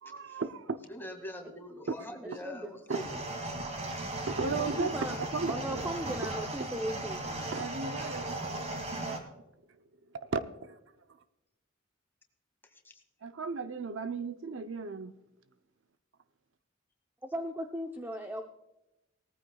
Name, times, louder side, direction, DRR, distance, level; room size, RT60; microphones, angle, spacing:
voice 1, 0.0-0.9 1.9-2.1 2.9-3.0 4.3-5.0 5.3-5.8 6.6-6.7 7.5-8.4 9.0-9.4 10.2-10.8 13.2-15.1, right 4 dB, 65° right, 10 dB, 0.6 m, -35 dB
voice 2, 0.9-3.1 7.0-7.7 12.8-12.9, equal, 10° left, 4 dB, 2.1 m, -44 dB
voice 3, 2.4-2.8 4.8-5.2 5.5-7.2 17.3-18.4, equal, 10° right, 5 dB, 0.7 m, -37 dB
sound 1, 2.9-9.2, right 2 dB, 30° right, 2.4 m, -37 dB
19.0 x 14.5 x 2.3 m, 0.97 s
head